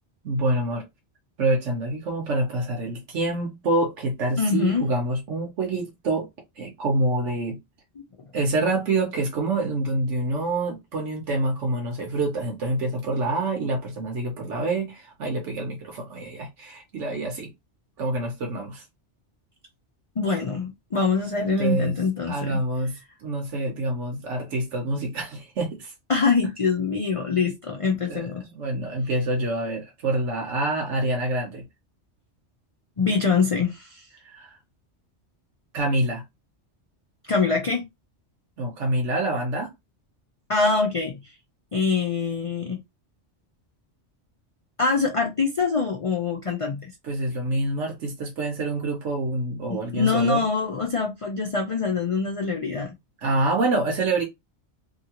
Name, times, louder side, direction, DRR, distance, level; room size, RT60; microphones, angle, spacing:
voice 1, 0.2-0.8 1.4-6.3 6.6-7.6 8.3-17.5 18.0-18.8 21.6-22.0 22.3-25.9 28.1-31.6 34.2-34.6 35.7-36.2 38.6-39.7 47.0-50.4 53.2-54.2, right 2 dB, 85° right, 1.2 m, -26 dB
voice 2, 4.4-4.9 20.2-22.6 26.1-28.4 33.0-34.1 37.2-37.8 40.5-41.3 41.7-42.8 44.8-46.9 49.7-52.9, left 4 dB, 45° left, 0.4 m, -24 dB
2.8 x 2.7 x 2.8 m
omnidirectional pair, 1.2 m